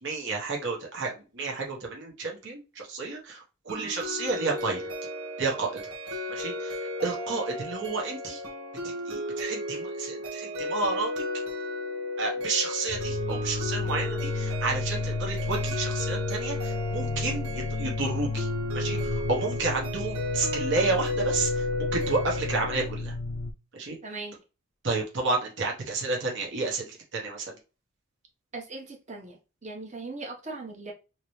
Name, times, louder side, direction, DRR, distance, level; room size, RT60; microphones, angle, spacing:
voice 1, 0.0-4.9 5.4-5.8 6.3-8.4 8.8-11.2 12.2-18.5 18.7-23.1 23.7-24.2 24.8-27.6, right 3 dB, 60° right, -1 dB, 1.2 m, -31 dB
sound 1, 3.7-22.9, left 1 dB, 90° right, 1.2 m, -34 dB
sound 2, 12.9-23.5, left 3 dB, 75° left, 0.5 m, -32 dB
voice 2, 24.0-24.4 28.5-30.9, right 3 dB, 35° right, 1 dB, 1.1 m, -39 dB
3.8 x 2.9 x 3.2 m, 0.30 s
head